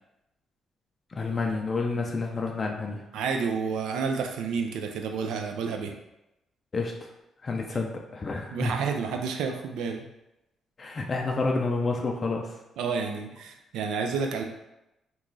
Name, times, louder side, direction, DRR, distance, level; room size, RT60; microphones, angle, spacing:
voice 1, 1.1-3.1 6.7-7.1 7.4-8.7 10.8-12.6, left 3 dB, 40° left, 1 dB, 0.4 m, -29 dB
voice 2, 3.1-5.9 8.5-10.0 12.8-14.4, right 5 dB, 85° right, 4 dB, 0.4 m, -30 dB
3.0 x 2.4 x 3.8 m, 0.93 s
cardioid pair, 75°, 0 cm